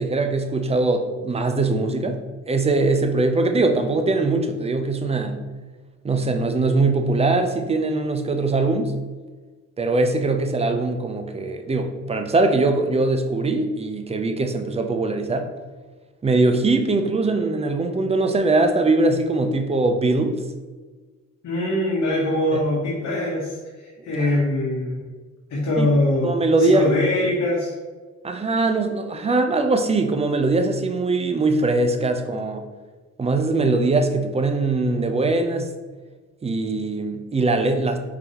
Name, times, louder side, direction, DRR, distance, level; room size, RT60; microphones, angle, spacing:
voice 1, 0.0-2.2 2.5-5.4 6.0-8.9 9.8-15.5 16.2-20.4 22.5-22.6 24.0-24.3 25.8-25.9 26.2-26.9 28.2-32.7 33.2-35.7 36.4-38.0, right 3 dB, 20° right, 6 dB, 0.5 m, -21 dB
voice 2, 21.4-23.5 23.8-25.1 25.5-26.3 26.6-27.7, left 1 dB, 60° left, -4 dB, 1.1 m, -22 dB
4.5 x 3.9 x 2.9 m, 1.3 s
cardioid pair, 90°, 30 cm